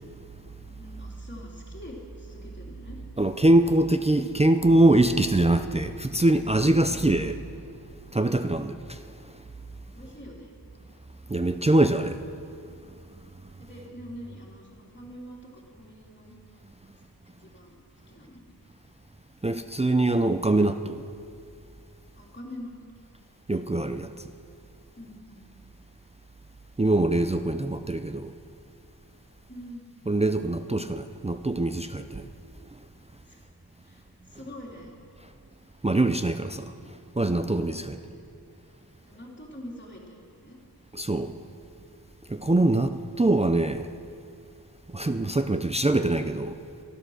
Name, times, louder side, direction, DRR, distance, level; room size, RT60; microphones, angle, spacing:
voice 1, 0.8-3.0 9.9-10.5 13.6-16.3 16.9-17.0 17.4-17.8 18.1-18.5 22.2-22.7 25.0-25.5 29.5-29.9 33.3-33.4 33.8-34.9 37.9-38.3 39.0-40.6, left 1 dB, 25° left, -3 dB, 3.2 m, -45 dB
voice 2, 3.2-7.4 8.1-9.0 9.2-9.3 11.3-12.2 19.4-21.0 23.5-24.1 26.8-28.3 30.1-32.3 35.8-36.7 37.2-38.0 40.9-41.3 42.3-43.9 44.9-46.6, right 2 dB, 15° right, 8 dB, 0.5 m, -23 dB
12.5 x 12.0 x 6.4 m, 2.4 s
wide cardioid pair, 55°, 40 cm